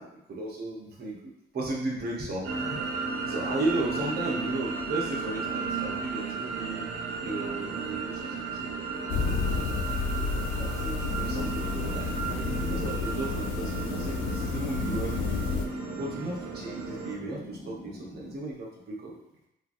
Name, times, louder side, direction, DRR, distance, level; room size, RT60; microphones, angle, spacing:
voice 1, 0.0-3.0 3.3-6.9 7.2-9.4 10.6-15.6 16.0-19.2, right 2 dB, 55° right, -3 dB, 0.9 m, -35 dB
sound 1, 2.4-17.1, right 4 dB, 90° right, 0.6 m, -34 dB
sound 2, 9.1-15.7, left 5 dB, 75° left, 0.4 m, -31 dB
sound 3, 11.3-18.3, left 1 dB, 35° left, 1.2 m, -44 dB
3.0 x 2.4 x 2.6 m, 0.82 s
cardioid pair, 90°, 20 cm